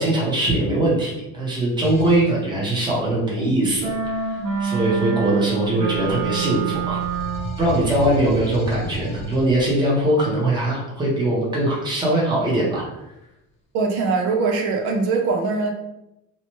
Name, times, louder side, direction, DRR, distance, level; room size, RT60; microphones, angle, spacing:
voice 1, 0.0-7.0 7.6-12.8, right 1 dB, 10° right, -5 dB, 0.7 m, -21 dB
sound 1, 1.8-2.3 3.6-5.5 5.9-10.1, equal, 20° left, 0.4 m, -33 dB
sound 2, 3.8-7.6, right 6 dB, 45° right, 1.1 m, -26 dB
voice 2, 13.7-15.7, right 4 dB, 85° right, 2 dB, 0.6 m, -22 dB
2.8 x 2.2 x 2.9 m, 0.90 s
cardioid pair, 155°, 36 cm